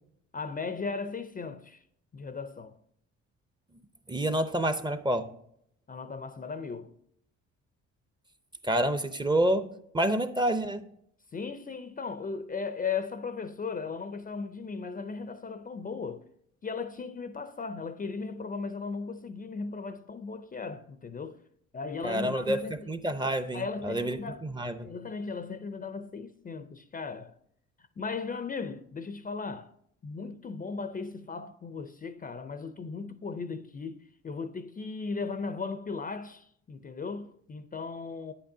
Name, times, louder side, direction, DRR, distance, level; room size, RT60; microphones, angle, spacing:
voice 1, 0.3-1.8 2.1-2.8 5.9-6.9 11.3-16.2 16.6-21.4 21.7-22.9 23.2-23.3 23.5-24.4 24.8-27.3 28.0-29.7 30.0-38.3, left 4 dB, 30° left, 0.5 m, -37 dB
voice 2, 4.1-5.3 8.6-9.7 9.9-10.9 22.0-22.6 22.9-24.9, right 1 dB, 15° right, 0.6 m, -28 dB
9.7 x 8.6 x 2.7 m
cardioid pair, 90°, 30 cm